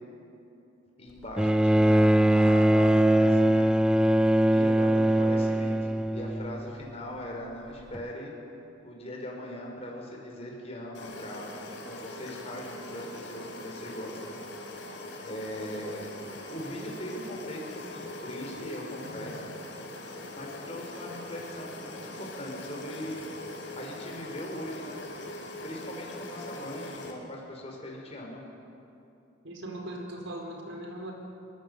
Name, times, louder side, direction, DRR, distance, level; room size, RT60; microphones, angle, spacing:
voice 1, 1.0-3.7 4.0-5.8 6.1-8.3 8.8-11.5 11.8-14.2 14.8-16.1 16.4-19.5 20.3-23.2 23.7-25.0 25.6-28.4, left 1 dB, 30° left, -1 dB, 5.3 m, -40 dB
Bowed string instrument, 1.4-6.8 7.9-8.0, right 1 dB, 5° right, 0.5 m, -22 dB
sound 1, 10.9-27.1, left 1 dB, 65° left, 4.1 m, -41 dB
voice 2, 29.4-31.1, right 1 dB, 75° right, 2 dB, 4.7 m, -39 dB
23.0 x 22.5 x 8.4 m, 2.8 s
head